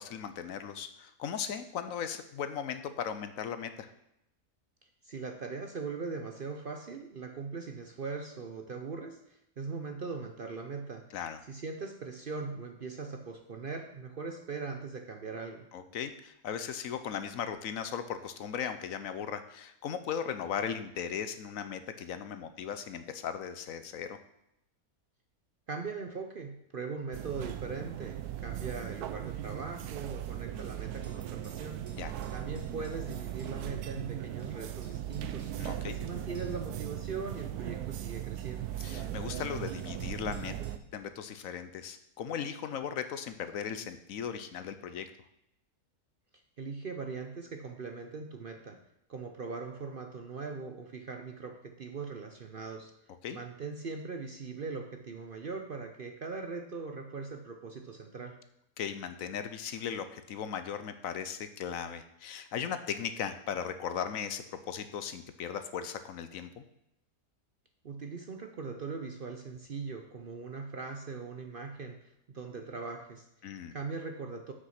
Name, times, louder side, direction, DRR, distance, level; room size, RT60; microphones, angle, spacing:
voice 1, 0.0-3.9 11.1-11.4 15.7-24.2 31.9-32.1 35.6-36.0 38.8-40.5 40.9-45.1 53.2-53.4 58.8-66.6 73.4-73.7, left 8 dB, 70° left, 10 dB, 1.0 m, -37 dB
voice 2, 5.0-11.1 11.5-15.7 25.7-31.9 32.3-35.5 35.8-38.7 46.6-48.8 49.1-52.9 53.3-58.4 67.8-73.3 73.7-74.5, right 4 dB, 50° right, 4 dB, 0.7 m, -40 dB
sound 1, 27.1-40.8, right 11 dB, 85° right, 1.2 m, -38 dB
sound 2, 31.0-33.5 34.4-34.5 34.8-35.5 36.3-36.7 37.3-37.4 38.5-38.6 39.3-40.8, right 1 dB, 30° right, 2.3 m, -60 dB
7.7 x 6.3 x 5.7 m, 0.80 s
omnidirectional pair, 1.6 m